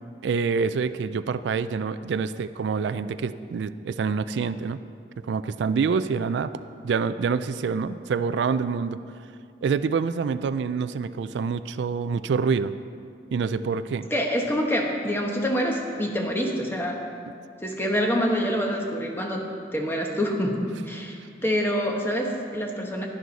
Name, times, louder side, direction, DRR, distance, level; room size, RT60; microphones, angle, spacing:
voice 1, 0.2-4.8 5.2-6.5 6.8-9.0 9.6-12.7 13.3-14.1, right 5 dB, 75° right, 13 dB, 0.3 m, -26 dB
voice 2, 14.1-17.0 17.6-19.5 19.7-23.1, equal, 15° left, 1 dB, 1.1 m, -26 dB
11.0 x 11.0 x 4.0 m, 2.3 s
head